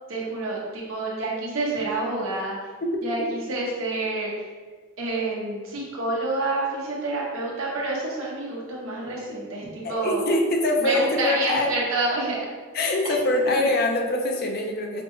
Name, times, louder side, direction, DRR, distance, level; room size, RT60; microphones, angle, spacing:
voice 1, 0.1-2.6 3.0-4.5 5.0-10.2 10.8-12.4 13.6-13.7, right 2 dB, 75° right, -4 dB, 1.0 m, -28 dB
voice 2, 9.8-11.7 12.7-15.0, left 2 dB, 45° left, 2 dB, 0.5 m, -24 dB
5.0 x 2.2 x 3.0 m, 1.4 s
head